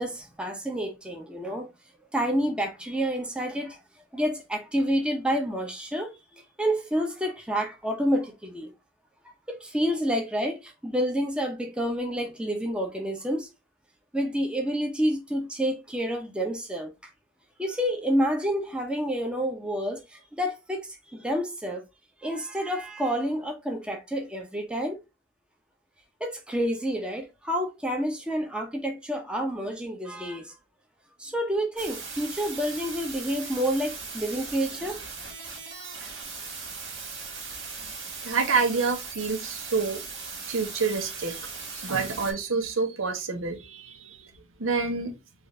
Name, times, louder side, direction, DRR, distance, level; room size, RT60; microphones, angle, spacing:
voice 1, 0.0-1.7 2.1-3.8 4.1-8.7 9.2-13.5 14.1-16.9 17.6-21.8 22.2-25.0 26.2-30.5 31.2-35.0, equal, 5° right, 0.7 m, -29 dB
sound 1, 31.8-42.3, right 4 dB, 70° right, 1.7 m, -38 dB
voice 2, 38.2-40.0 40.5-41.4 41.7-44.3 44.6-45.1, right 4 dB, 90° right, 1.0 m, -28 dB
4.5 x 2.6 x 3.1 m
head